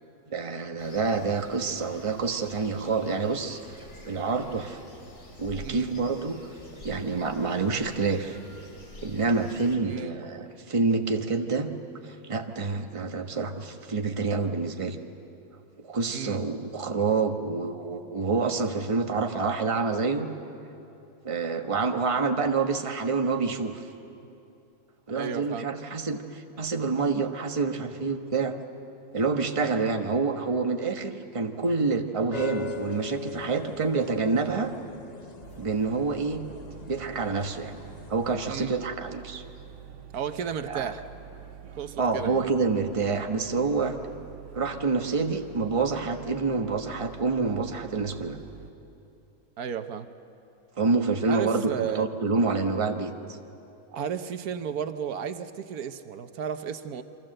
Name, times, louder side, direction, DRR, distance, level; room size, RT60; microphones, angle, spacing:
voice 1, 0.3-3.6 4.1-4.8 5.4-6.4 6.8-8.4 9.0-11.7 12.0-15.0 15.9-20.3 21.2-23.8 25.1-28.5 29.1-34.7 35.6-36.4 36.9-37.8 38.1-39.4 40.7-40.9 42.0-44.0 44.5-48.4 50.8-53.1, right 4 dB, 25° right, 5 dB, 1.2 m, -27 dB
sound 1, 0.8-9.8, left 1 dB, 60° left, 3.6 m, -48 dB
voice 2, 5.6-5.9 9.8-10.1 16.1-16.4 25.1-25.7 38.5-38.7 40.1-41.0 41.8-42.4 49.6-50.1 51.3-52.1 53.9-57.0, right 8 dB, 85° right, 9 dB, 1.4 m, -33 dB
sound 2, 32.3-38.4, left 5 dB, 30° left, 0.9 m, -41 dB
sound 3, 35.4-48.7, right 8 dB, 60° right, 1.2 m, -46 dB
28.0 x 24.5 x 7.8 m, 2.8 s
omnidirectional pair, 1.5 m